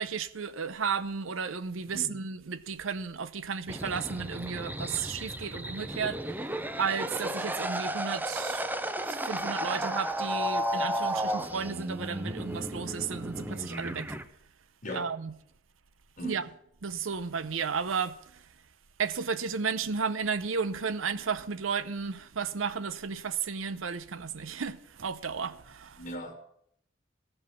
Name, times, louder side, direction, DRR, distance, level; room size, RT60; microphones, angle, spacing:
voice 1, 0.0-6.2 6.8-8.6 9.1-14.2 14.9-15.4 16.2-16.5 16.8-18.4 19.0-26.1, right 6 dB, 80° right, 0.7 m, -33 dB
voice 2, 1.8-2.2 14.8-15.1 16.2-16.5 26.0-26.3, equal, 40° left, 1.4 m, -39 dB
sound 1, 3.7-14.2, right 1 dB, 10° right, 0.5 m, -33 dB
14.0 x 5.3 x 8.3 m
head